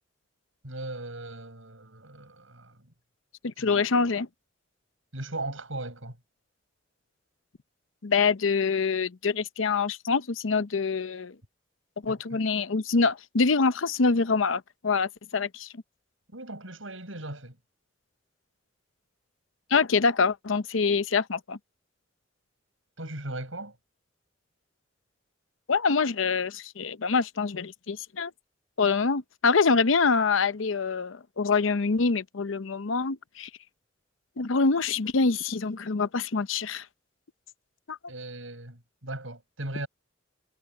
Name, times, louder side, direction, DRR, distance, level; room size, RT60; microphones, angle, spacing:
voice 1, 0.6-2.9 3.6-3.7 5.1-6.2 12.1-12.4 16.3-17.6 23.0-23.8 38.1-39.9, right 2 dB, 80° right, 7.3 m, -38 dB
voice 2, 3.4-4.3 8.0-11.3 12.0-15.7 19.7-21.6 25.7-28.3 28.8-33.5 34.4-36.8 37.9-38.0, left 4 dB, 80° left, 0.7 m, -25 dB
head